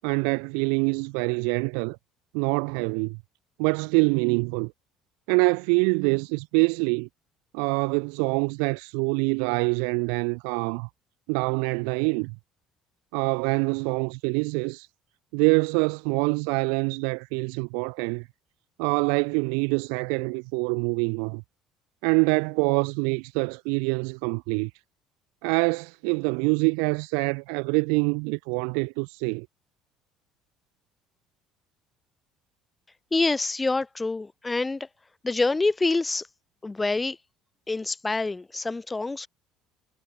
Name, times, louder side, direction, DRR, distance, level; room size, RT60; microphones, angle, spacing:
voice 1, 0.0-2.0 2.3-3.2 3.6-4.7 5.3-7.1 7.5-10.9 11.3-12.3 13.1-14.9 15.3-18.3 18.8-21.4 22.0-24.7 25.4-29.5, right 40 dB or more, 80° right, 7.9 m, -25 dB
voice 2, 33.1-34.9 35.2-36.2 36.6-37.2 37.7-39.3, left 3 dB, 15° left, 6.4 m, -26 dB
supercardioid pair, 90°, 0 cm